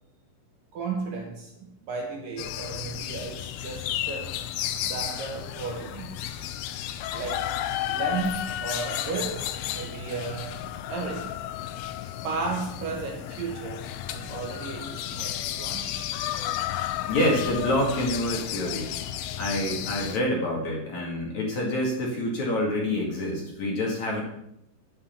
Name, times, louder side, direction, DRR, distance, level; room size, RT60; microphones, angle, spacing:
voice 1, 0.7-4.4 4.8-6.5 7.0-7.5 7.9-10.6 10.9-11.4 12.2-16.1, right 4 dB, 65° right, 1 dB, 2.6 m, -34 dB
sound 1, 2.4-20.2, left 12 dB, 85° left, 2.1 m, -33 dB
voice 2, 17.1-18.9 19.4-24.2, left 1 dB, 50° left, -2 dB, 3.1 m, -27 dB
9.7 x 9.5 x 5.8 m, 0.77 s
omnidirectional pair, 5.0 m